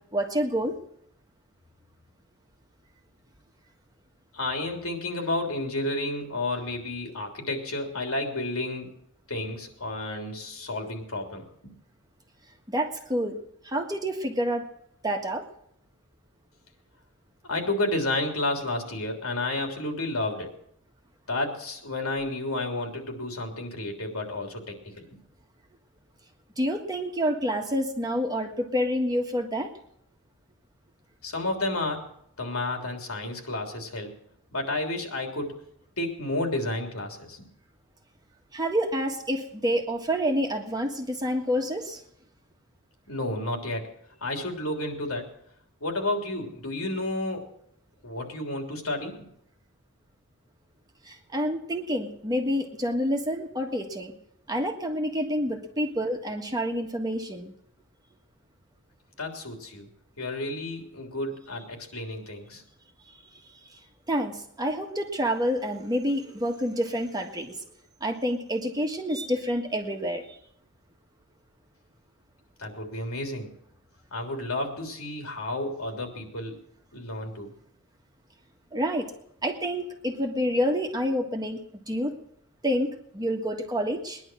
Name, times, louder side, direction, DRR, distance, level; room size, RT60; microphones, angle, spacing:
voice 1, 0.1-0.8 12.7-13.4 13.6-14.6 15.0-15.4 26.6-29.7 38.5-42.0 51.0-54.1 54.5-57.5 63.7-63.8 64.1-67.6 68.0-70.4 78.7-79.1 79.4-81.6 81.9-82.2 82.6-84.2, equal, 20° right, 3 dB, 1.6 m, -28 dB
voice 2, 4.3-8.9 9.3-11.7 17.4-20.6 21.3-25.0 31.2-32.1 32.4-34.1 34.5-35.6 36.0-37.4 43.1-43.9 44.2-45.3 45.8-47.5 48.0-49.3 59.2-59.9 60.2-62.6 72.6-73.5 74.1-76.5 76.9-77.5, left 2 dB, 75° left, 3 dB, 3.4 m, -31 dB
20.5 x 11.0 x 6.2 m, 0.72 s
head